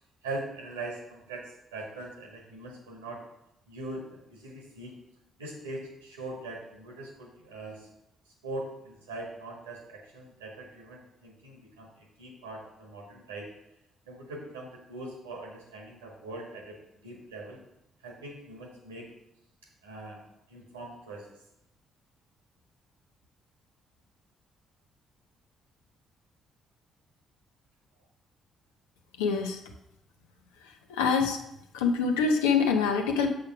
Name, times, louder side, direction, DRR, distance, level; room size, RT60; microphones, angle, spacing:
voice 1, 0.2-3.2 3.7-4.9 5.4-7.9 8.4-13.5 14.1-16.8 17.0-17.6 18.0-19.1 19.8-20.2 20.5-21.4, right 2 dB, 90° right, 0 dB, 1.7 m, -41 dB
voice 2, 29.2-29.6 30.9-31.4 31.7-33.3, left 5 dB, 80° left, 3 dB, 1.0 m, -25 dB
6.9 x 5.6 x 5.9 m, 0.83 s
hypercardioid pair, 45°, 0 cm